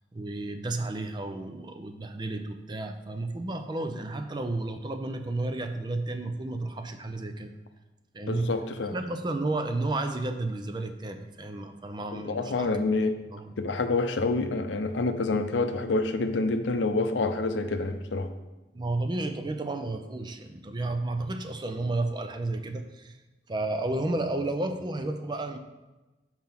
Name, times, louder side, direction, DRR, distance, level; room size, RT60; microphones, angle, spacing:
voice 1, 0.1-7.5 8.1-8.5 8.9-12.8 13.3-13.6 18.7-23.2 23.5-25.6, right 2 dB, 25° right, 7 dB, 0.4 m, -32 dB
voice 2, 8.3-9.0 12.1-13.2 13.6-18.3, left 3 dB, 80° left, 8 dB, 0.6 m, -27 dB
5.6 x 4.4 x 5.9 m, 1.1 s
head